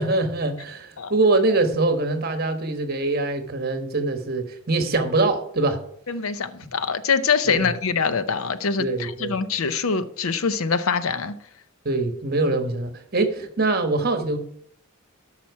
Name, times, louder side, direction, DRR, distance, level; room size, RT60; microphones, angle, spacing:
voice 1, 0.0-5.8 7.5-7.6 8.8-9.4 11.8-14.4, right 2 dB, 45° right, 1.2 m, -23 dB
voice 2, 6.1-11.4, left 5 dB, 75° left, 0.7 m, -24 dB
13.0 x 5.9 x 4.7 m
head